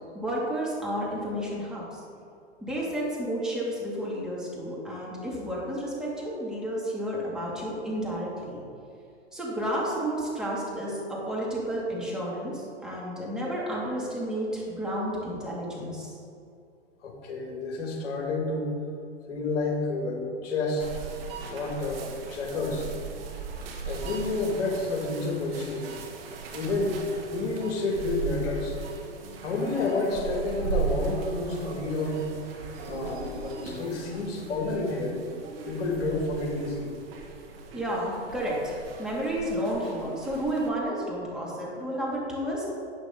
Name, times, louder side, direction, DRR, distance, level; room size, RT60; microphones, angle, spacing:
voice 1, 0.1-2.0 2.6-8.6 9.3-16.1 37.7-42.6, equal, ahead, -6 dB, 2.8 m, -31 dB
voice 2, 17.0-18.8 19.3-20.9 21.4-22.9 23.8-25.9 26.5-28.8 29.4-32.3 32.9-35.2 35.6-36.9, left 3 dB, 55° left, 1 dB, 2.6 m, -30 dB
sound 1, 20.8-40.7, right 5 dB, 55° right, 1.5 m, -38 dB
11.5 x 8.1 x 4.0 m, 2.5 s
hypercardioid pair, 115°, 35 cm